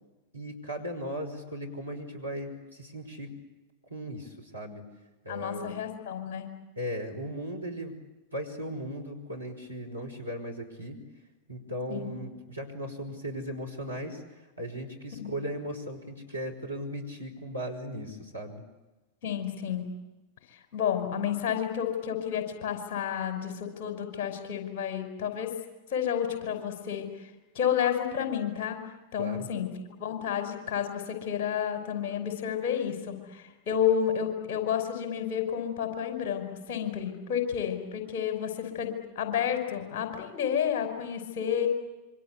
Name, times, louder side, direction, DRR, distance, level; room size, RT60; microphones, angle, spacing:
voice 1, 0.3-3.3 3.9-4.8 5.2-5.7 6.8-8.0 8.3-11.0 11.5-18.6 29.2-29.5, equal, 85° right, 2 dB, 5.4 m, -37 dB
voice 2, 5.3-6.5 11.9-12.1 15.2-15.3 19.2-19.9 20.5-25.5 25.9-27.1 27.6-28.8 29.1-29.7 30.0-41.7, left 8 dB, 50° left, 6 dB, 5.5 m, -30 dB
27.0 x 25.0 x 8.5 m, 1.1 s
figure-of-eight pair, 90°, 0 cm